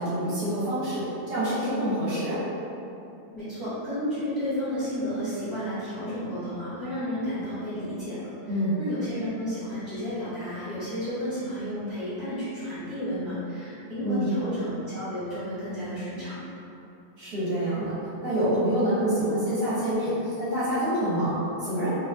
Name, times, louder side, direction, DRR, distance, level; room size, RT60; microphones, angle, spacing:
voice 1, 0.0-2.4 8.5-8.8 14.0-14.3 17.2-17.9 18.2-21.9, right 1 dB, 75° right, -11 dB, 1.9 m, -26 dB
voice 2, 3.3-8.5 8.8-16.4, equal, 15° left, -14 dB, 1.4 m, -32 dB
4.5 x 3.2 x 2.3 m, 2.8 s
omnidirectional pair, 1.7 m